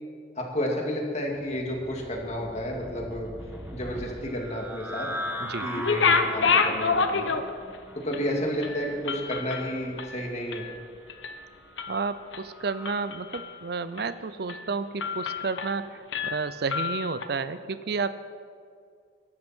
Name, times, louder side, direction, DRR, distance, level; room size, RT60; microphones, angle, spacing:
voice 1, 0.4-3.3 3.7-5.1 5.6-7.3 7.9-10.7, equal, 35° left, 0 dB, 2.5 m, -31 dB
sound 1, 1.2-13.1, equal, 10° right, 1.2 m, -41 dB
sound 2, 5.7-7.8 8.1-8.2 8.6-10.8 11.1-11.4 11.8-12.4 12.9-13.6 14.0-14.1 14.5-14.7 15.0-15.8 16.1-17.3, left 5 dB, 80° left, 1.0 m, -28 dB
voice 2, 11.9-18.1, right 4 dB, 55° right, 13 dB, 0.5 m, -31 dB
21.5 x 12.0 x 4.5 m, 2.2 s
head